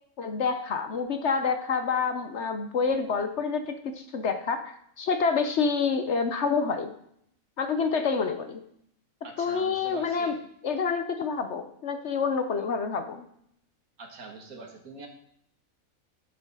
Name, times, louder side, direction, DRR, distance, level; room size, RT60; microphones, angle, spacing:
voice 1, 0.2-6.9 7.6-8.6 9.4-10.3 10.6-13.3, left 5 dB, 55° left, 8 dB, 1.1 m, -28 dB
voice 2, 9.2-10.3 14.0-15.1, right 4 dB, 80° right, 2 dB, 2.1 m, -43 dB
11.0 x 6.8 x 5.4 m, 0.71 s
omnidirectional pair, 1.5 m